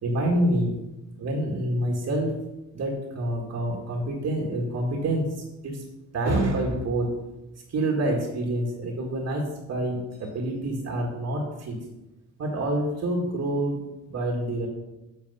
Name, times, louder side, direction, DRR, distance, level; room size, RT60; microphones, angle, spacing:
voice 1, 0.0-0.8 1.2-2.4 2.7-5.8 6.1-7.1 7.7-11.8 12.4-13.8 14.1-14.7, right 1 dB, 55° right, -2 dB, 1.8 m, -27 dB
8.0 x 4.6 x 5.5 m, 0.98 s
cardioid pair, 90°, 30 cm